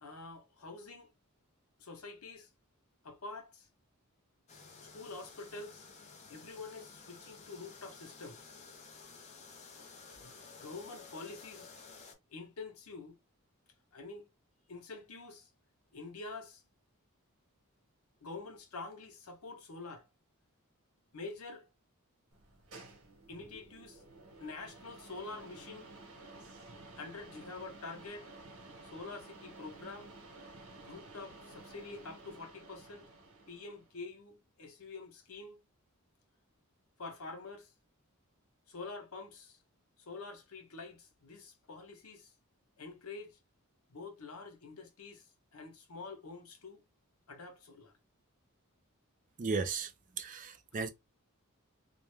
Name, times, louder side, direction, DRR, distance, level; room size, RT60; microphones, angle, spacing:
voice 1, 0.0-1.1 1.8-2.5 3.0-3.7 4.8-5.9 6.3-8.5 9.7-9.9 10.2-10.3 10.6-11.7 12.3-13.2 13.9-14.3 14.7-15.5 15.9-16.6 18.2-20.1 21.1-21.7 23.3-24.0 24.4-25.9 27.0-28.3 28.8-30.1 30.8-33.1 33.5-35.6 37.0-37.7 38.7-39.6 40.0-42.3 42.8-43.4 43.9-45.3 45.5-46.8 47.3-47.9, left 3 dB, 75° left, 0.8 m, -47 dB
sound 1, 4.5-12.1, left 4 dB, 30° left, 0.5 m, -53 dB
sound 2, 22.3-33.9, right 2 dB, 75° right, 1.1 m, -53 dB
voice 2, 49.4-49.9 50.2-50.9, right 4 dB, 35° right, 0.4 m, -35 dB
2.3 x 2.1 x 3.1 m
head